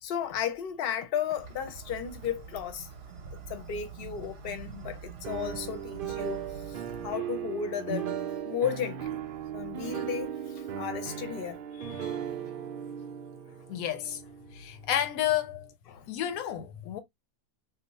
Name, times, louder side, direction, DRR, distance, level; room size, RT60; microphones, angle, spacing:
voice 1, 0.0-2.9 3.5-8.1 8.4-9.2 9.5-11.6 15.9-16.1, left 8 dB, 55° left, 0.7 m, -34 dB
sound 1, 1.4-7.1, right 6 dB, 55° right, 0.8 m, -45 dB
sound 2, 5.2-15.2, right 9 dB, 80° right, 0.4 m, -37 dB
voice 2, 11.8-12.1 13.7-14.2 14.5-15.7 16.1-17.0, left 11 dB, 85° left, 1.1 m, -31 dB
2.8 x 2.0 x 4.0 m
omnidirectional pair, 1.5 m